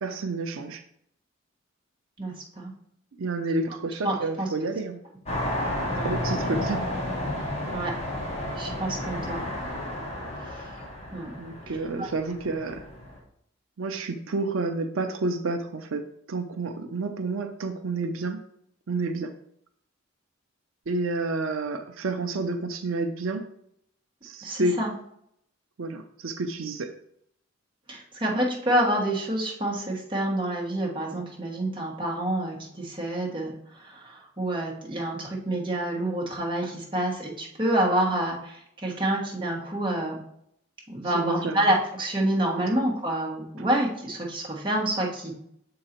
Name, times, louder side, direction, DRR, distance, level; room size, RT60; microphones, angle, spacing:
voice 1, 0.0-0.8 3.2-5.0 6.0-6.8 11.4-12.8 13.8-18.4 18.9-19.3 20.9-23.5 24.2-24.8 25.8-26.9 41.0-41.7, right 3 dB, 85° right, 7 dB, 0.6 m, -30 dB
voice 2, 2.2-2.7 4.0-4.5 6.0-6.1 7.7-7.9 8.6-9.4 10.5-10.6 11.1-11.3 12.0-12.1 24.4-24.9 27.9-40.2 40.9-45.3, right 1 dB, 25° right, -3 dB, 1.3 m, -28 dB
sound 1, 5.2-13.2, left 1 dB, 30° left, 1.5 m, -32 dB
6.7 x 3.9 x 4.4 m, 0.71 s
head